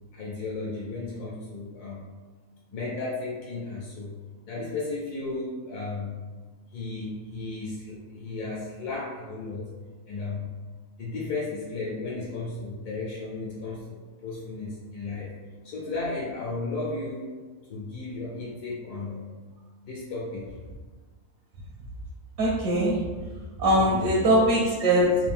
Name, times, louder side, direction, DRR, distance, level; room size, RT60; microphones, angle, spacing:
voice 1, 0.1-2.1 2.7-4.2 4.5-6.2 6.7-9.8 10.1-10.6 11.0-15.3 15.6-17.3 17.7-19.3 19.8-20.5 23.7-23.9, left 3 dB, 75° left, -5 dB, 1.3 m, -34 dB
voice 2, 22.4-23.0 23.6-25.2, right 1 dB, 70° right, -4 dB, 1.2 m, -21 dB
3.6 x 2.6 x 3.5 m, 1.3 s
omnidirectional pair, 1.6 m